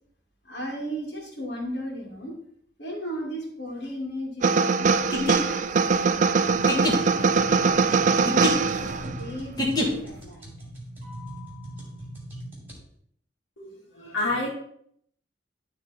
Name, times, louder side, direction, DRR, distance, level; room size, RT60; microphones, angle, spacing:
voice 1, 0.4-2.4 2.8-6.4 6.9-10.7 11.0-12.0, equal, 60° left, -2 dB, 2.5 m, -37 dB
sound 1, 4.4-9.2, right 5 dB, 40° right, 0.4 m, -22 dB
sound 2, 5.0-10.2, left 1 dB, 20° left, 1.5 m, -29 dB
sound 3, 6.5-12.8, right 1 dB, 10° right, 2.6 m, -41 dB
voice 2, 13.6-14.5, left 2 dB, 90° left, -4 dB, 2.1 m, -29 dB
11.5 x 3.9 x 4.3 m, 0.66 s
head